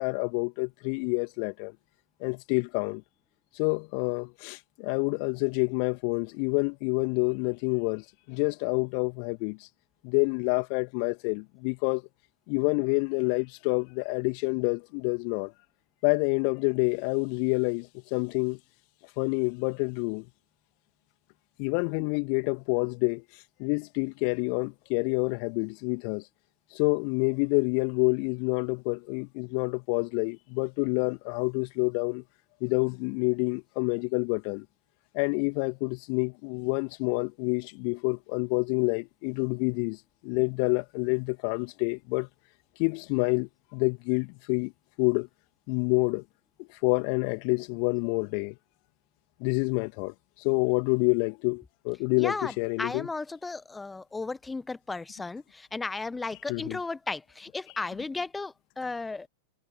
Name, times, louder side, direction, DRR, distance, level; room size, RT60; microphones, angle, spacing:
voice 1, 0.0-1.8 2.2-3.0 3.6-9.7 10.0-12.0 12.5-15.5 16.0-18.6 19.2-20.3 21.6-23.2 23.6-26.3 26.7-32.2 32.6-34.6 35.1-42.3 42.8-44.7 45.0-45.3 45.7-46.2 46.8-48.6 49.4-53.1 56.5-56.8, left 40 dB or more, 45° left, 2.7 m, -28 dB
voice 2, 52.2-59.3, left 3 dB, 10° left, 1.4 m, -35 dB
figure-of-eight pair, 90°, 0 cm